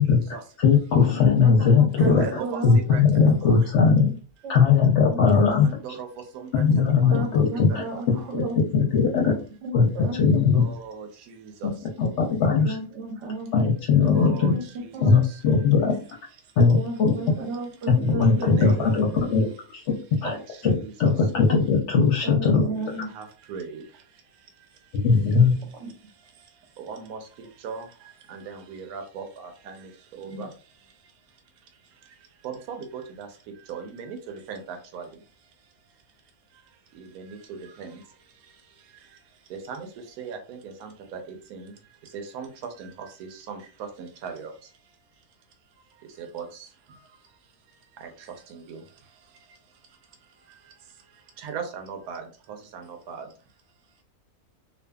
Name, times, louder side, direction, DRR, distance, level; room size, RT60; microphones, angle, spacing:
voice 1, 0.0-0.4 2.0-3.7 5.3-8.3 10.5-11.7 14.0-15.7 16.4-16.5 18.2-19.2 20.2-21.1 22.7-25.1 26.2-30.5 30.9-31.4 31.7-35.7 36.5-45.0 45.9-53.3, right 6 dB, 80° right, 5 dB, 1.1 m, -40 dB
voice 2, 0.6-2.2 2.6-4.1 4.5-5.7 6.5-8.4 8.7-9.3 9.7-9.9 10.2-10.6 12.0-12.7 13.5-14.5 15.0-16.0 16.6-17.1 17.9-19.5 19.7-19.9 20.2-20.4 20.6-22.6 24.9-25.5, left 5 dB, 60° left, 0 dB, 0.8 m, -19 dB
voice 3, 1.4-2.8 4.0-4.1 4.4-5.2 7.1-8.6 9.6-10.4 12.6-13.5 14.5-14.6 14.9-15.1 16.7-19.3 22.2-23.1 25.3-25.5 25.8-25.9 30.2-30.4, right 3 dB, 60° right, 3 dB, 0.9 m, -34 dB
2.6 x 2.4 x 2.2 m, 0.38 s
omnidirectional pair, 1.6 m